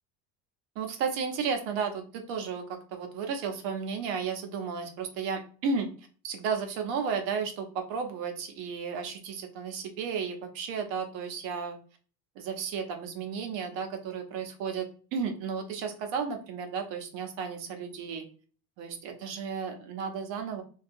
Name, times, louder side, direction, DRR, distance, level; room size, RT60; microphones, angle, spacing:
voice 1, 0.8-5.9 6.2-11.8 12.4-18.2 18.8-20.6, right 6 dB, 75° right, 5 dB, 0.7 m, -33 dB
2.7 x 2.3 x 2.5 m, 0.39 s
cardioid pair, 140°, 34 cm